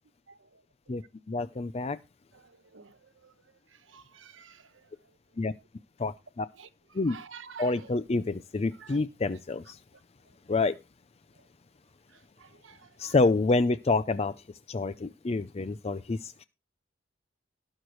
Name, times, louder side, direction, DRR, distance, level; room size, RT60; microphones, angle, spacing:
voice 1, 0.3-1.0 2.3-5.2 6.6-7.9 8.7-9.0 9.3-9.7 10.2-10.8 11.3-11.5 12.1-13.2, right 6 dB, 85° right, 1.1 m, -52 dB
voice 2, 1.3-2.0 5.4-5.5 6.0-6.5 6.9-7.2 7.6-9.8 10.5-10.7 13.0-14.3 14.7-16.5, left 3 dB, 35° left, 0.5 m, -27 dB
18.0 x 6.4 x 3.1 m
head